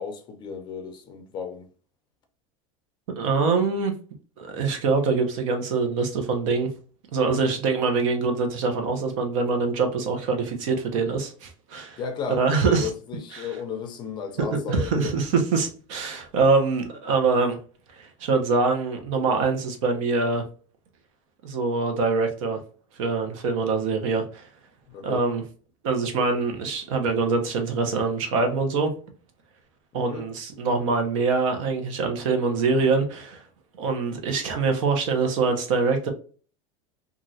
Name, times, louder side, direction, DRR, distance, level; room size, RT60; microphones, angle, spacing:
voice 1, 0.0-1.7 12.0-15.2 24.9-25.2 29.9-30.3, left 6 dB, 25° left, 0.5 m, -34 dB
voice 2, 3.2-3.9 4.4-6.7 7.1-12.0 12.4-12.9 13.3-13.6 14.4-17.6 17.9-20.4 21.4-22.6 23.0-24.5 25.0-25.4 25.8-28.9 29.9-33.4 33.8-36.1, right 4 dB, 70° right, 0.9 m, -24 dB
3.0 x 2.5 x 2.7 m
supercardioid pair, 160°, 17 cm